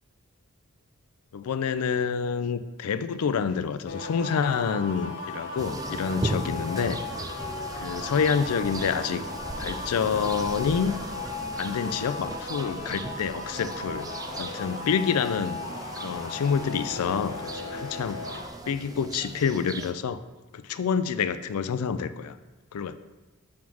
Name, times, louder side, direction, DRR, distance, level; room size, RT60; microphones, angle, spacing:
voice 1, 1.3-7.0 7.8-9.2 9.6-10.9 11.6-14.1 14.4-15.6 16.0-18.2 18.7-20.2 20.5-22.4 22.7-22.9, left 6 dB, 85° left, 13 dB, 0.4 m, -27 dB
sound 1, 3.9-18.5, left 3 dB, 60° left, 0.9 m, -37 dB
sound 2, 5.6-19.9, right 2 dB, 15° right, 0.3 m, -38 dB
6.2 x 3.6 x 6.0 m, 1.2 s
head